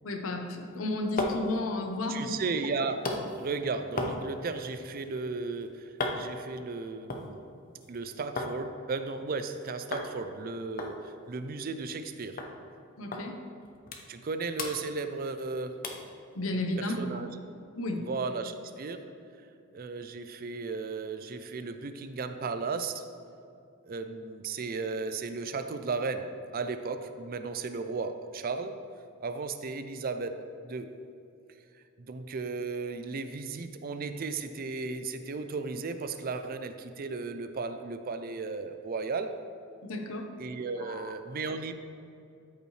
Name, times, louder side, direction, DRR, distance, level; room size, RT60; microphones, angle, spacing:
voice 1, 0.0-2.4 13.0-13.4 16.3-17.2 17.8-18.0 39.8-40.3 40.8-41.1, left 2 dB, 90° left, 3 dB, 0.9 m, -33 dB
sound 1, 0.7-8.6 8.9-9.5 9.9-10.1 10.4-10.5 10.8-12.1 12.4-12.5 13.1-13.2 13.6-14.3 14.5-15.5 15.8-16.1 16.6-16.7, left 2 dB, 45° left, 0.8 m, -37 dB
voice 2, 2.1-7.4 7.9-12.4 14.1-15.8 16.8-17.3 18.0-19.1 19.7-23.1 23.8-28.8 29.2-30.9 32.0-39.4 40.4-41.7, right 4 dB, 45° right, 9 dB, 0.5 m, -35 dB
13.0 x 5.4 x 3.2 m, 2.6 s
head